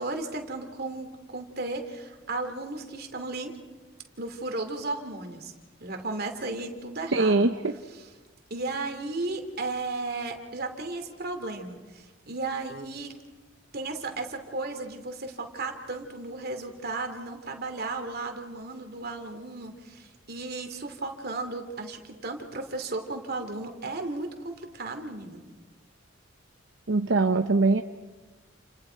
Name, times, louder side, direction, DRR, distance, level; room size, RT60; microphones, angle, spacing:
voice 1, 0.0-3.6 4.2-5.5 5.8-7.5 8.5-13.1 13.7-25.4, right 3 dB, 55° right, 5 dB, 2.8 m, -35 dB
voice 2, 7.1-7.7 26.9-27.8, right 3 dB, 70° right, 7 dB, 0.9 m, -22 dB
29.5 x 29.5 x 4.6 m, 1.3 s
head